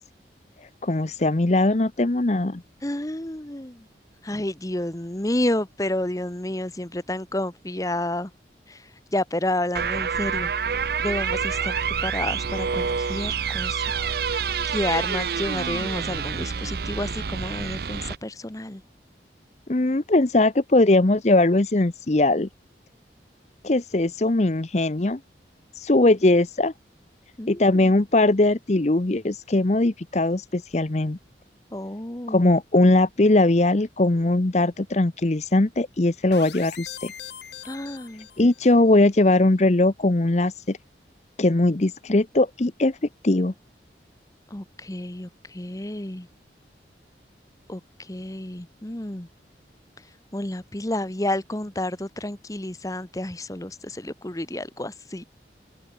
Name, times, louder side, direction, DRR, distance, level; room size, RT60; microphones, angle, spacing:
voice 1, 0.8-2.6 19.7-22.5 23.6-25.2 25.8-26.7 27.5-31.2 32.3-37.1 38.4-40.8 41.4-43.0 43.2-43.5, left 2 dB, 40° left, 0.8 m, -20 dB
voice 2, 2.8-3.9 4.2-8.3 8.7-10.5 11.0-14.0 14.3-18.8 27.4-27.9 31.7-32.5 37.6-38.3 44.5-46.3 47.7-49.3 50.3-55.2, left 1 dB, 20° left, 1.1 m, -30 dB
sound 1, 9.7-18.2, right 6 dB, 55° right, 0.5 m, -27 dB
sound 2, 36.3-38.7, left 9 dB, 80° left, 2.8 m, -41 dB
open air
head